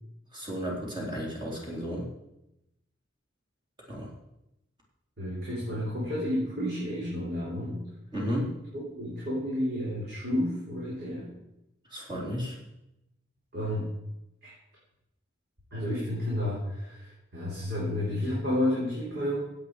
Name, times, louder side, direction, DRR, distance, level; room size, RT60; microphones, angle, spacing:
voice 1, 0.3-2.1 3.9-4.1 8.1-8.5 11.9-12.6, equal, 25° right, -3 dB, 3.8 m, -33 dB
voice 2, 5.2-7.8 8.7-11.3 13.5-13.9 14.4-14.5 15.7-19.4, left 1 dB, 60° right, -6 dB, 4.0 m, -31 dB
16.5 x 8.3 x 4.9 m, 0.89 s
head